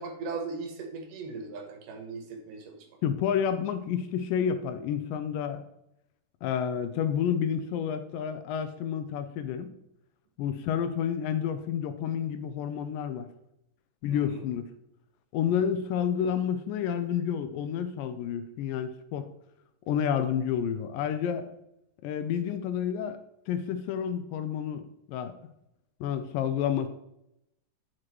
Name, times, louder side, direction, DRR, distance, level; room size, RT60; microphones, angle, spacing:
voice 1, 0.0-2.8 14.1-14.4 15.4-15.5, right 4 dB, 70° right, 3 dB, 2.5 m, -38 dB
voice 2, 3.0-5.6 6.4-9.7 10.4-13.3 14.0-14.6 15.3-19.3 19.9-21.5 22.0-23.2 23.5-25.4 26.0-26.9, left 8 dB, 80° left, 10 dB, 2.2 m, -30 dB
9.9 x 6.0 x 3.0 m, 0.82 s
omnidirectional pair, 4.1 m